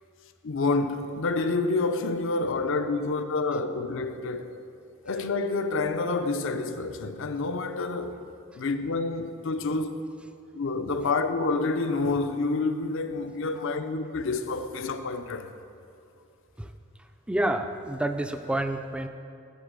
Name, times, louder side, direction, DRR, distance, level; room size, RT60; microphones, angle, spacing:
voice 1, 0.4-4.6 5.0-8.2 8.6-9.9 10.5-15.5, left 3 dB, 65° left, 0.6 m, -28 dB
voice 2, 17.3-19.1, right 1 dB, 5° right, 0.3 m, -28 dB
11.0 x 4.3 x 6.4 m
head